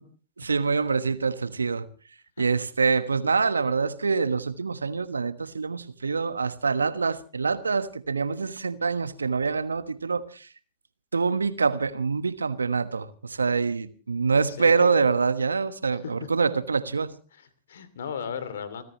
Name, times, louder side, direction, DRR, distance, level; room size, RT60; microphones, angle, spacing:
voice 1, 0.4-1.9 2.4-10.5 11.1-17.1, right 4 dB, 85° right, 1.3 m, -25 dB
voice 2, 14.6-14.9 15.9-16.3 17.3-18.8, left 7 dB, 70° left, 2.7 m, -36 dB
30.0 x 14.0 x 3.0 m
figure-of-eight pair, 95°, 0 cm